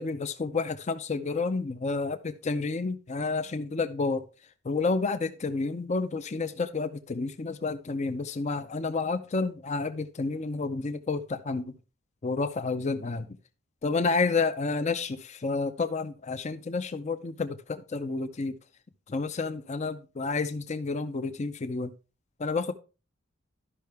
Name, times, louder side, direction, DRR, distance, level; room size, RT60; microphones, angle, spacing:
voice 1, 0.0-4.2 4.6-11.7 12.2-13.3 13.8-18.6 19.1-21.9 22.4-22.7, left 4 dB, 35° left, 10 dB, 0.5 m, -30 dB
12.5 x 5.6 x 3.4 m, 0.32 s
head